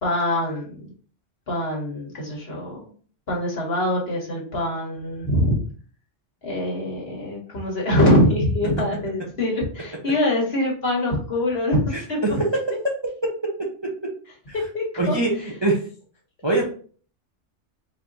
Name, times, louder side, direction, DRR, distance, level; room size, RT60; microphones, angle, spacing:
voice 1, 0.0-0.9 1.5-2.8 3.3-5.6 6.4-12.4 14.7-15.2, left 1 dB, 50° left, -2 dB, 1.6 m, -23 dB
voice 2, 11.9-12.5 14.0-14.1 14.5-14.6 15.0-15.8 16.4-16.6, right 2 dB, 25° right, -2 dB, 0.7 m, -23 dB
4.3 x 2.9 x 3.9 m, 0.43 s
omnidirectional pair, 1.3 m